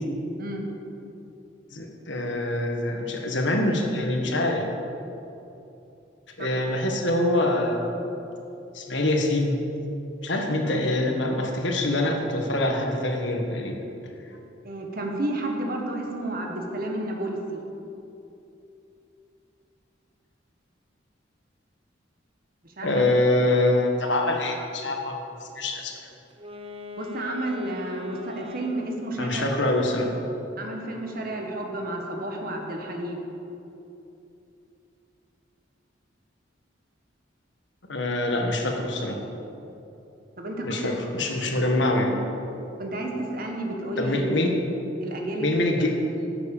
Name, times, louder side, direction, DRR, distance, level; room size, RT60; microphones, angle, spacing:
voice 1, 1.7-4.6 6.4-8.0 8.7-9.6 10.2-13.8 22.8-25.2 25.5-26.0 29.2-30.1 37.9-39.2 40.6-42.1 44.0-44.5 45.4-45.9, left 1 dB, 65° left, 2 dB, 1.6 m, -25 dB
voice 2, 14.6-17.6 22.6-23.1 27.0-29.5 30.6-33.2 40.4-40.9 42.8-44.3 45.0-45.7, right 1 dB, 50° right, 2 dB, 1.6 m, -31 dB
Wind instrument woodwind instrument, 26.3-29.2, left 3 dB, 30° right, 0.8 m, -40 dB
11.5 x 7.8 x 7.3 m, 2.9 s
head